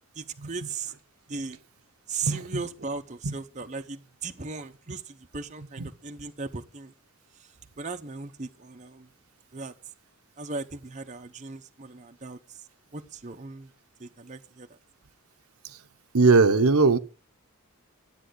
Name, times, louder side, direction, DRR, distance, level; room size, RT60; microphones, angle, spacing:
voice 1, 0.2-0.9 1.3-1.6 2.1-6.9 7.8-9.1 9.5-9.7 10.4-12.6 12.9-13.7 14.0-14.8, right 4 dB, 35° right, 0.8 m, -37 dB
voice 2, 16.1-17.0, right 3 dB, 80° right, 0.9 m, -19 dB
13.0 x 9.0 x 6.3 m
head